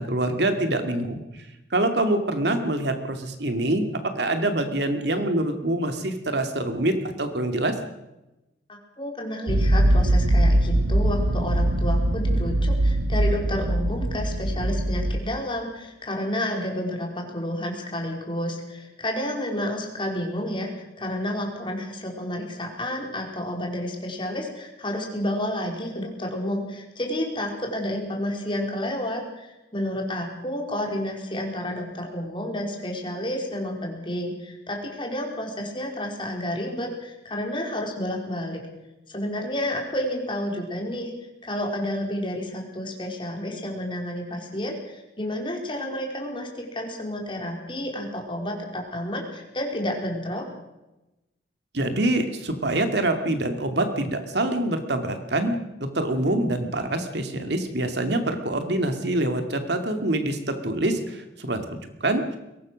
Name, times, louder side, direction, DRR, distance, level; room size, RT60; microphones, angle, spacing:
voice 1, 0.0-1.4 1.7-3.9 4.2-7.7 51.7-55.6 55.9-62.4, right 1 dB, 65° right, 6 dB, 2.5 m, -25 dB
voice 2, 8.7-38.6 39.1-41.1 41.4-50.5, left 1 dB, 25° left, 1 dB, 4.7 m, -30 dB
sound 1, 9.5-15.2, right 1 dB, 90° right, 1.2 m, -22 dB
22.5 x 18.5 x 6.4 m, 0.97 s
head